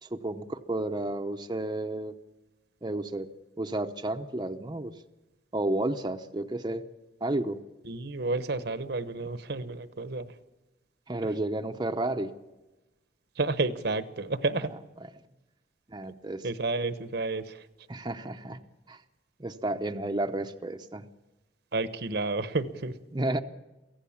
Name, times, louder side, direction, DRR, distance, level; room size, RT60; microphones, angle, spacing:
voice 1, 0.0-2.1 2.8-3.3 3.6-4.9 5.5-6.9 7.2-7.6 9.2-9.3 11.1-12.3 14.6-14.7 15.9-16.5 17.9-18.6 18.9-19.0 19.4-21.1 23.1-23.4, right 1 dB, 25° right, 5 dB, 0.8 m, -32 dB
voice 2, 7.8-10.3 13.4-14.7 16.4-17.6 21.7-23.0, right 3 dB, 65° right, 12 dB, 1.0 m, -30 dB
23.5 x 16.0 x 7.2 m, 1.1 s
head